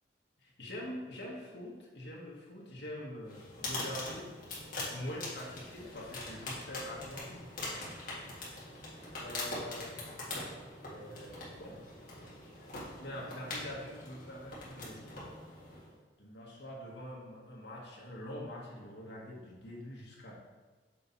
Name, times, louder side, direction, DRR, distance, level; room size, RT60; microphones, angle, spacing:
voice 1, 0.4-4.4 4.9-7.4 9.2-10.1 10.8-12.5 12.8-15.2 16.2-20.3, left 1 dB, 75° left, -4 dB, 1.6 m, -45 dB
sound 1, 3.3-15.9, left 2 dB, 50° left, 1.8 m, -43 dB
6.6 x 4.4 x 4.1 m, 1.3 s
head